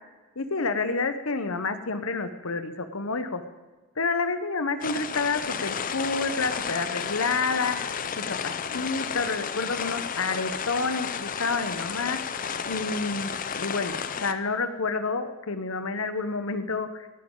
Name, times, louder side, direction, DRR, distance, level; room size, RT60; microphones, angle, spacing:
voice 1, 0.4-3.4 4.0-7.8 8.2-12.2 12.7-17.1, left 4 dB, 70° left, 10 dB, 1.0 m, -29 dB
sound 1, 4.8-14.3, left 7 dB, 40° left, 0.6 m, -32 dB
17.5 x 10.5 x 3.9 m, 1.2 s
head